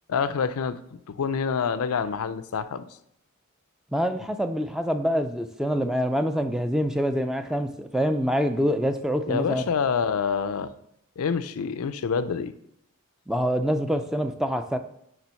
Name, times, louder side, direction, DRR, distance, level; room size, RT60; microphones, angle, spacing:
voice 1, 0.1-0.8 1.1-2.8 9.3-10.7 11.2-12.5, left 6 dB, 70° left, 12 dB, 0.4 m, -27 dB
voice 2, 3.9-9.6 13.3-14.8, equal, ahead, 7 dB, 0.3 m, -25 dB
7.3 x 3.4 x 6.2 m, 0.73 s
head